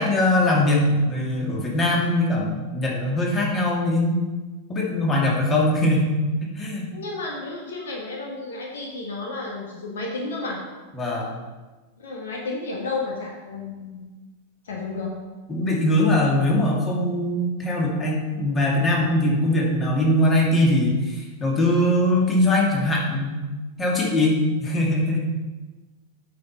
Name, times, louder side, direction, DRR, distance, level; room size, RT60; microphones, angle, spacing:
voice 1, 0.0-4.3 4.7-6.9 10.9-11.3 15.5-23.5 23.8-25.3, left 1 dB, 20° left, -2 dB, 2.3 m, -21 dB
voice 2, 6.9-10.6 12.0-14.1 14.6-15.1, left 3 dB, 65° left, 0 dB, 1.4 m, -32 dB
8.3 x 6.0 x 5.4 m, 1.2 s
figure-of-eight pair, 90°, 0 cm